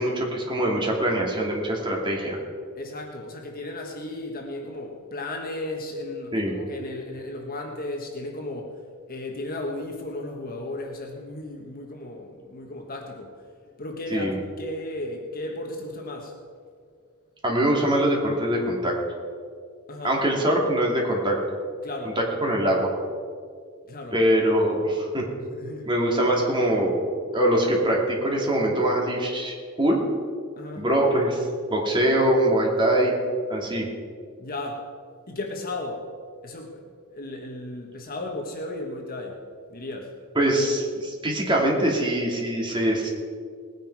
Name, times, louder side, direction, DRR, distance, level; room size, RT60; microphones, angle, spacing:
voice 1, 0.0-2.4 6.3-6.6 14.1-14.4 17.4-18.9 20.0-21.3 22.2-22.9 24.1-25.2 25.9-27.0 27.3-30.0 30.8-33.1 33.5-33.9 40.3-43.1, right 1 dB, 20° right, -2 dB, 2.8 m, -23 dB
voice 2, 2.8-8.8 9.1-13.3 13.8-16.4 19.9-20.2 21.8-22.2 23.9-24.2 25.5-25.9 30.6-30.9 34.4-34.9 35.3-36.1 36.4-39.4 39.7-40.1, left 2 dB, 45° left, 1 dB, 1.5 m, -35 dB
19.5 x 10.0 x 4.8 m, 2.1 s
head